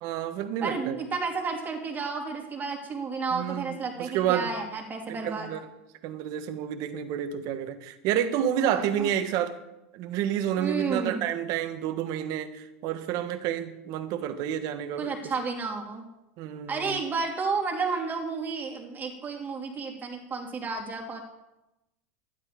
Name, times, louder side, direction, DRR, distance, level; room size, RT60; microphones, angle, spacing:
voice 1, 0.0-1.0 3.3-4.5 5.1-5.6 6.0-9.6 9.9-15.3 16.4-17.0, right 10 dB, 55° right, 10 dB, 1.3 m, -30 dB
voice 2, 0.6-5.5 8.6-9.1 10.6-11.3 15.0-16.0 16.7-21.2, right 4 dB, 25° right, 1 dB, 3.1 m, -31 dB
12.5 x 11.0 x 5.1 m, 0.93 s
hypercardioid pair, 110°, 8 cm